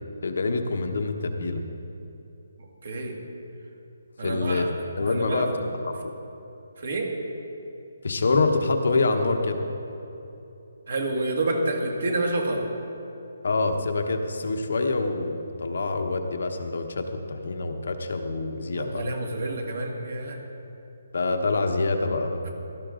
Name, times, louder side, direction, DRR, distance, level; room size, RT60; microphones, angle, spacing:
voice 1, 0.2-1.6 4.2-5.5 5.9-6.1 8.0-9.6 13.4-19.0 21.1-22.4, left 3 dB, 55° left, 5 dB, 1.0 m, -26 dB
voice 2, 2.8-3.2 4.2-5.5 6.8-7.1 10.9-12.7 18.7-20.4 22.4-22.5, right 2 dB, 45° right, 1 dB, 2.0 m, -28 dB
16.5 x 13.0 x 3.8 m, 2.9 s
hypercardioid pair, 180°, 0 cm